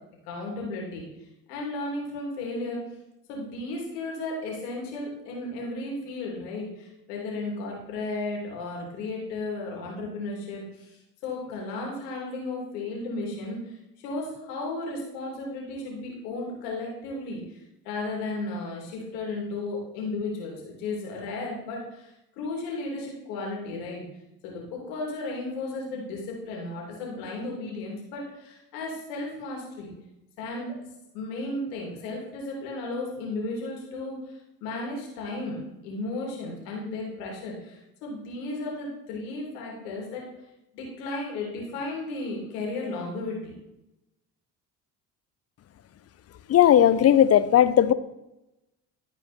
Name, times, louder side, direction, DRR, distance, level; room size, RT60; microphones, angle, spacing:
voice 1, 0.2-1.0 1.5-2.8 3.3-11.0 11.2-13.8 14.0-24.0 24.4-29.9 30.4-30.7 31.1-34.2 34.6-35.6 35.8-40.2 40.7-43.6, left 2 dB, 80° left, -1 dB, 3.0 m, -34 dB
voice 2, 46.5-47.9, left 10 dB, 30° left, 15 dB, 0.5 m, -17 dB
13.5 x 4.5 x 4.3 m, 0.91 s
hypercardioid pair, 65°, 48 cm